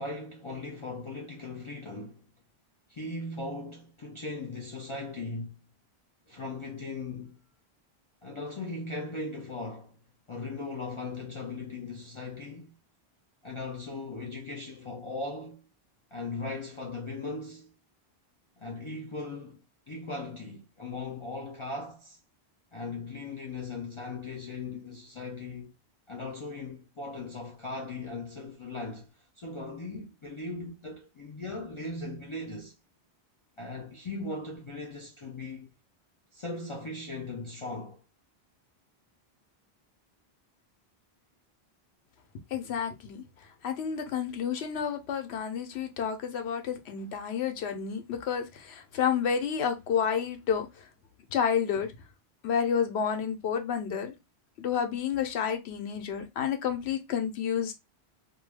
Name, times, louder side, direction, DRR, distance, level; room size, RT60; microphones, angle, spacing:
voice 1, 0.0-2.3 2.9-5.6 6.3-7.4 8.2-10.0 10.3-12.7 13.4-15.6 16.1-17.7 18.6-22.2 22.7-25.7 26.1-32.8 33.6-35.7 36.3-38.0, left 3 dB, 45° left, 0.4 m, -38 dB
voice 2, 42.5-43.2 43.6-50.7 51.3-51.9 52.4-54.1 54.6-57.7, left 7 dB, 85° left, 0.9 m, -30 dB
2.2 x 2.2 x 3.2 m
omnidirectional pair, 1.1 m